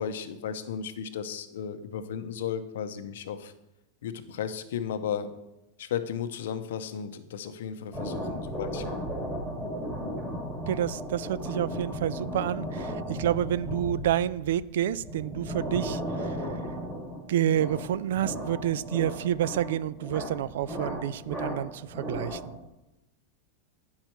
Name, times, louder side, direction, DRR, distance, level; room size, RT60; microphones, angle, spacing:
voice 1, 0.0-3.5 4.0-5.3 5.8-9.1, left 8 dB, 80° left, 10 dB, 0.8 m, -34 dB
sound 1, 7.9-22.6, equal, 10° right, 2.3 m, -35 dB
voice 2, 10.7-16.4 17.3-22.6, right 11 dB, 75° right, 19 dB, 0.3 m, -29 dB
9.6 x 5.6 x 4.5 m, 0.94 s
supercardioid pair, 155°, 0 cm